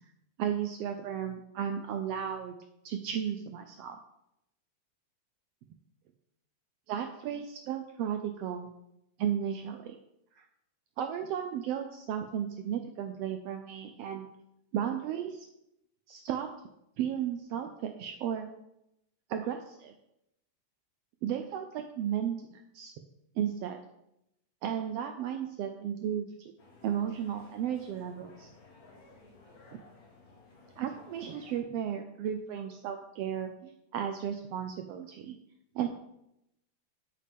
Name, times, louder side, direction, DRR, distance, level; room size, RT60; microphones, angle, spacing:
voice 1, 0.4-2.6 2.8-4.0 6.9-8.7 9.2-9.9 10.3-10.4 11.0-14.3 14.7-15.5 16.1-16.5 17.0-18.5 19.3-19.9 21.2-22.9 23.4-23.8 24.6-26.5 26.8-28.5 30.8-35.4 35.7-35.9, right 9 dB, 85° right, 6 dB, 1.4 m, -34 dB
sound 1, 26.6-31.6, left 3 dB, 50° left, 1.1 m, -56 dB
8.4 x 7.5 x 3.5 m, 0.82 s
omnidirectional pair, 3.4 m